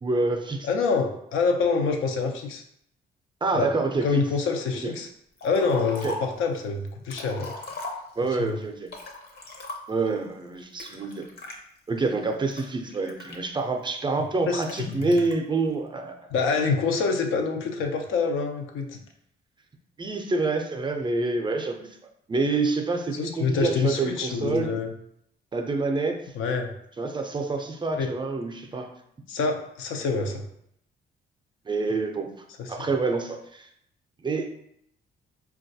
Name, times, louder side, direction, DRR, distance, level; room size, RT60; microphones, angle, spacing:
voice 1, 0.0-0.7 3.4-4.2 4.8-4.9 6.0-6.1 8.2-8.9 9.9-11.2 11.9-16.2 20.0-21.9 22.3-24.7 25.5-26.2 27.0-28.9 31.7-32.3 32.7-33.7 34.2-34.5, right 3 dB, 25° right, 4 dB, 0.4 m, -27 dB
voice 2, 0.6-2.6 3.5-3.7 4.0-5.1 5.4-7.5 8.4-8.6 14.5-15.1 16.3-19.0 23.1-24.9 26.3-26.7 28.0-28.1 29.3-30.5 32.6-32.9, left 4 dB, 80° left, 4 dB, 0.5 m, -26 dB
Liquid, 5.4-6.4 6.9-8.4 8.9-10.1 10.8-11.6 12.2-13.8 14.6-15.3, left 2 dB, 55° left, 0.8 m, -39 dB
3.8 x 2.3 x 2.7 m, 0.72 s
cardioid pair, 90°, 20 cm